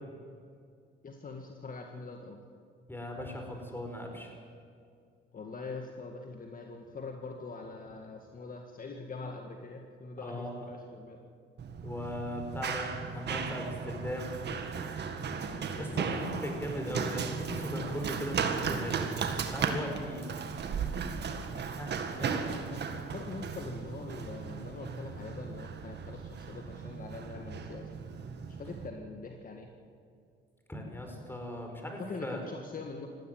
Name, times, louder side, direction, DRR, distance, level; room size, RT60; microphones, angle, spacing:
voice 1, 1.0-2.4 5.3-11.2 15.5-16.4 17.8-18.3 22.2-27.9 28.5-29.7 31.8-33.1, left 3 dB, 45° left, 3 dB, 1.9 m, -43 dB
voice 2, 2.9-4.3 10.2-10.7 11.8-14.4 15.8-19.1 19.5-20.4 21.8-22.5 30.7-32.4, equal, 10° left, 3 dB, 5.1 m, -38 dB
Run, 11.6-28.9, right 6 dB, 60° right, 1.9 m, -36 dB
19.5 x 15.0 x 9.3 m, 2.3 s
cardioid pair, 90°, 20 cm